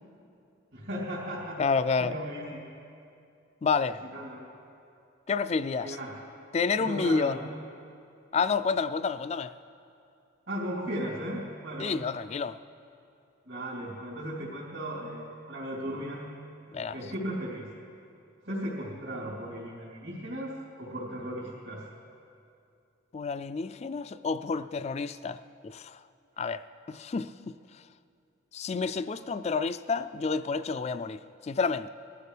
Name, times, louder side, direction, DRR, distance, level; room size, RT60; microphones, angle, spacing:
voice 1, 0.7-1.6 2.0-2.7 4.0-4.5 5.8-6.1 6.8-7.5 10.5-12.0 13.4-16.3 16.9-17.6 18.4-21.8, equal, 80° right, 3.4 m, -36 dB
voice 2, 1.6-2.1 3.6-4.0 5.3-6.0 6.5-7.4 8.3-9.5 11.8-12.6 16.7-17.0 23.1-26.0 26.4-27.8 28.5-31.9, left 5 dB, 35° left, 0.3 m, -29 dB
20.5 x 14.0 x 3.4 m
head